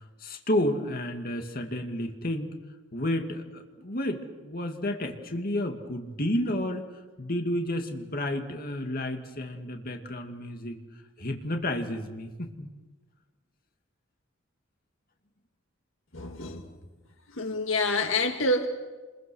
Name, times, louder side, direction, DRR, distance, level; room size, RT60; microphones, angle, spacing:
voice 1, 0.2-2.6 2.9-6.9 7.2-10.8 11.2-12.7, left 1 dB, 50° left, 2.3 m, -31 dB
voice 2, 16.1-16.6 17.3-18.7, left 2 dB, 75° left, 2.1 m, -27 dB
29.5 x 22.0 x 6.4 m
head